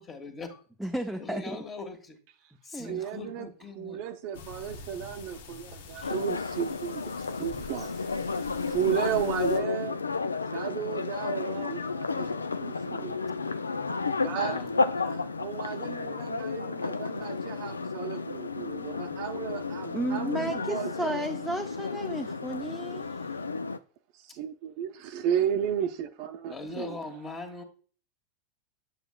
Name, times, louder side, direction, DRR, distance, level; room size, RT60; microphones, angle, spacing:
voice 1, 0.0-0.6 1.2-2.2 2.6-4.0 5.9-6.1 11.0-11.1 11.5-11.8 14.3-15.1 26.5-27.6, left 3 dB, 25° left, 1.4 m, -41 dB
voice 2, 0.8-1.6 2.7-3.0 19.9-23.1, right 1 dB, ahead, 0.5 m, -33 dB
voice 3, 2.8-3.5 3.7-7.0 7.4-7.9 8.6-10.0 10.5-13.1 14.2-14.6 15.0-21.2 24.1-27.0, right 9 dB, 55° right, 0.6 m, -34 dB
sound 1, 4.3-9.6, left 4 dB, 70° left, 0.7 m, -46 dB
sound 2, 6.0-23.8, left 4 dB, 90° left, 0.3 m, -32 dB
7.3 x 6.7 x 2.3 m
hypercardioid pair, 90°, 0 cm